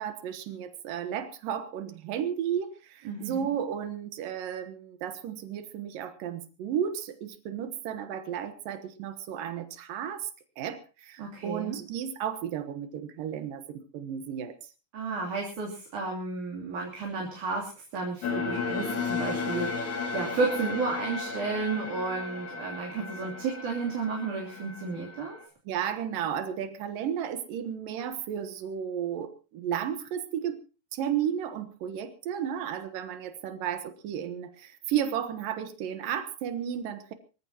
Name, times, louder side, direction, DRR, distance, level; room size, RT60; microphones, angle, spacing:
voice 1, 0.0-10.3 10.6-14.7 25.7-30.6 30.9-37.1, right 9 dB, 85° right, 10 dB, 3.0 m, -33 dB
voice 2, 3.1-3.5 11.2-11.8 14.9-25.4, right 4 dB, 65° right, -1 dB, 4.6 m, -32 dB
sound 1, 18.2-25.5, left 4 dB, 60° left, 3.7 m, -34 dB
25.0 x 14.5 x 2.9 m, 0.33 s
omnidirectional pair, 3.8 m